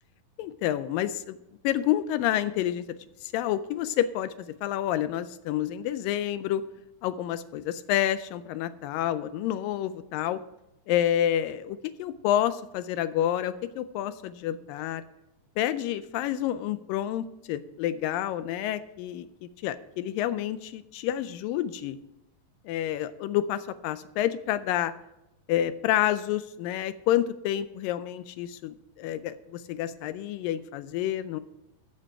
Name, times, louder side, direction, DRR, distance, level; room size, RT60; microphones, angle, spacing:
voice 1, 0.4-1.4 1.6-2.8 3.3-4.3 4.6-6.6 7.0-10.4 10.9-15.0 15.6-19.3 19.6-22.0 22.7-24.9 25.5-31.4, left 12 dB, 80° left, 13 dB, 2.2 m, -29 dB
14.0 x 7.5 x 4.7 m, 0.89 s
omnidirectional pair, 4.1 m